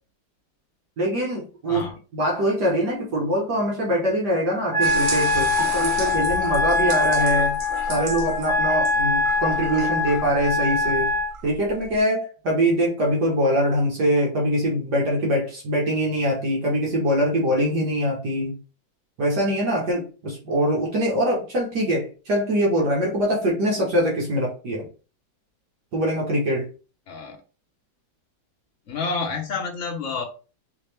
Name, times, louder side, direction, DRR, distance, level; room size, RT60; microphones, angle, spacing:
voice 1, 1.0-1.9 2.1-7.6 7.9-11.1 11.4-18.5 19.2-24.9 25.9-26.7, equal, 60° right, 1.8 m, -23 dB
Wind instrument woodwind instrument, 4.7-11.3, left 3 dB, ahead, 1.6 m, -23 dB
sound 1, 4.8-12.0, right 3 dB, 90° right, 0.4 m, -33 dB
voice 2, 27.1-27.4 28.9-30.2, left 4 dB, 45° left, 1.1 m, -29 dB
4.9 x 3.0 x 3.3 m
omnidirectional pair, 2.1 m